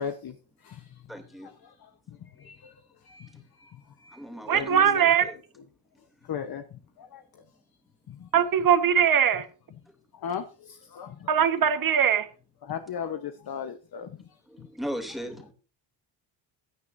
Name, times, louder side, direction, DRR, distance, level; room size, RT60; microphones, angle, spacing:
voice 1, 0.0-1.0 1.4-1.9 2.4-4.2 4.5-5.3 6.2-6.6 7.0-7.2 8.1-8.3 8.6-8.7 9.3-9.4 10.1-11.8 12.6-14.2 14.6-14.7 15.1-15.3, left 8 dB, 50° left, 1.1 m, -38 dB
voice 2, 1.1-1.5 2.1-2.2 3.3-3.4 4.1-4.8 5.2-5.3 9.9-10.0 14.5-15.5, equal, ahead, 2.9 m, -38 dB
voice 3, 4.5-5.3 8.3-9.5 11.3-12.3, right 8 dB, 45° right, 1.4 m, -21 dB
16.5 x 9.6 x 2.7 m
cardioid pair, 135°, 46 cm